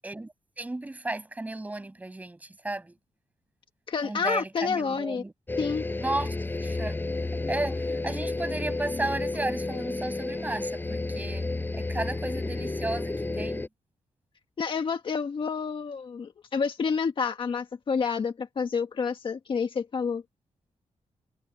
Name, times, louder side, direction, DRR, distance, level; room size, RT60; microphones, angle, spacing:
voice 1, 0.0-3.0 4.0-5.3 6.0-7.0 7.5-11.5 11.7-13.6, right 2 dB, 15° right, 5.8 m, -34 dB
voice 2, 3.9-5.2 5.6-5.8 14.6-20.2, left 5 dB, 45° left, 1.6 m, -29 dB
sound 1, 5.5-13.7, left 2 dB, 15° left, 7.6 m, -31 dB
wide cardioid pair, 170°, 12 cm